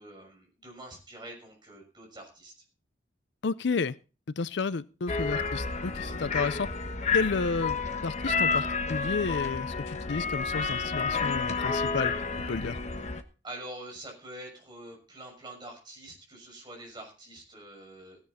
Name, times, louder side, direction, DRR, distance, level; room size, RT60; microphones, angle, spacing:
voice 1, 0.0-2.5 6.2-6.5 13.4-18.2, right 1 dB, 25° right, 0 dB, 6.4 m, -45 dB
voice 2, 3.4-4.0 4.4-6.7 7.1-12.1 12.5-12.8, left 4 dB, 70° left, 17 dB, 0.5 m, -31 dB
sound 1, 5.1-13.2, left 4 dB, 40° left, 1.3 m, -30 dB
16.5 x 10.5 x 4.2 m, 0.34 s
head